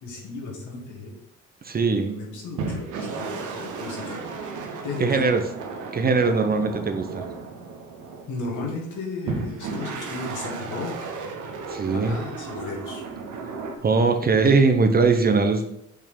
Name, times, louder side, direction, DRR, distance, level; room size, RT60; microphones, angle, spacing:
voice 1, 0.0-1.1 1.9-4.3 4.8-5.2 8.3-11.1 11.9-13.0, left 3 dB, 80° left, -1 dB, 1.9 m, -34 dB
voice 2, 1.6-2.2 5.0-5.4 5.9-7.2 11.7-12.2 13.8-15.7, right 4 dB, 30° right, 7 dB, 0.7 m, -20 dB
sound 1, 2.6-8.5 9.3-13.8, right 4 dB, 85° right, 1.0 m, -34 dB
5.4 x 3.6 x 5.1 m, 0.79 s
cardioid pair, 90°, 30 cm